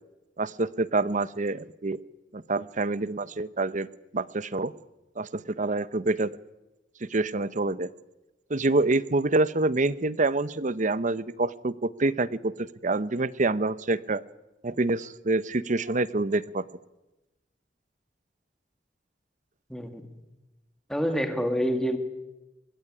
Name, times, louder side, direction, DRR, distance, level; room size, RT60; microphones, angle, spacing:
voice 1, 0.4-2.0 2.3-3.9 4.1-4.7 5.2-6.4 7.0-7.9 8.5-14.2 14.6-16.6, right 2 dB, 45° right, 0.9 m, -27 dB
voice 2, 19.7-20.1 20.9-22.0, equal, 5° left, 2.4 m, -27 dB
28.5 x 16.0 x 10.0 m
head